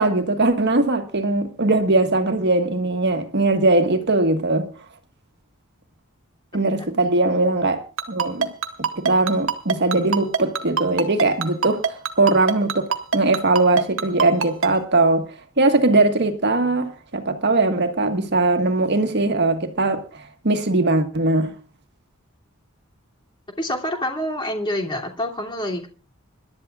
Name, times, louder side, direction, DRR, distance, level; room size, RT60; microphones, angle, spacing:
voice 1, 0.0-4.7 6.5-8.5 8.8-21.5, right 2 dB, 55° right, 1.6 m, -20 dB
Ringtone, 8.0-14.7, right 6 dB, 70° right, 1.6 m, -22 dB
voice 2, 23.6-25.9, left 1 dB, 25° left, 2.8 m, -27 dB
26.0 x 12.0 x 2.4 m
head